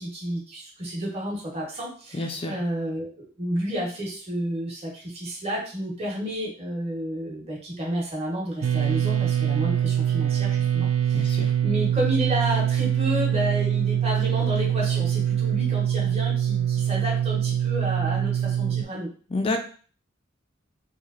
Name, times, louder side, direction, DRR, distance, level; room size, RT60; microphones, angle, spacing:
voice 1, 0.0-19.1, equal, 30° right, -4 dB, 1.0 m, -31 dB
voice 2, 2.1-2.6 11.1-11.5 19.3-19.6, left 2 dB, 25° left, 4 dB, 0.3 m, -28 dB
sound 1, 8.6-18.8, right 10 dB, 75° right, 0.3 m, -24 dB
3.1 x 2.7 x 2.4 m, 0.41 s
head